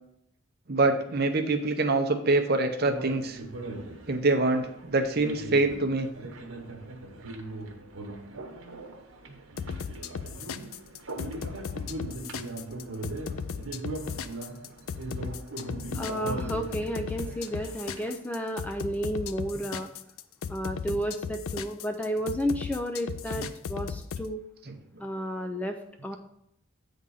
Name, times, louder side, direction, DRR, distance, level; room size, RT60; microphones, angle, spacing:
voice 1, 0.7-3.4 4.1-6.1 10.6-10.7 12.0-12.1 13.2-13.4 15.8-16.4 20.9-21.0 23.4-23.5 24.7-24.8, right 2 dB, 45° right, 6 dB, 0.8 m, -26 dB
sound 1, 2.8-18.1, right 2 dB, 90° right, 1.1 m, -40 dB
sound 2, 9.6-24.3, left 6 dB, 80° left, 0.4 m, -36 dB
voice 2, 15.9-19.9 20.5-24.4 25.0-25.8 26.0-26.2, equal, 5° left, 5 dB, 0.3 m, -32 dB
8.5 x 3.8 x 5.5 m, 0.77 s
head